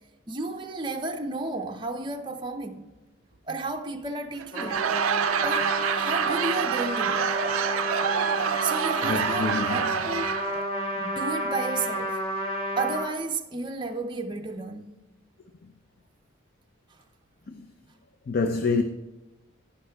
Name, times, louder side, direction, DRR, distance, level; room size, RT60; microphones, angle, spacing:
voice 1, 0.3-2.9 3.5-4.9 5.4-7.4 8.6-10.7 10.9-12.2 12.8-15.0, right 3 dB, 20° right, 0.5 m, -33 dB
Laughter / Crowd, 4.4-10.6, right 8 dB, 85° right, 0.4 m, -27 dB
Trumpet, 4.5-13.1, equal, 30° left, 1.6 m, -31 dB
voice 2, 9.0-9.9 15.6-15.7 17.5-17.7 18.3-18.8, left 4 dB, 45° left, 0.5 m, -27 dB
11.0 x 9.9 x 2.3 m
head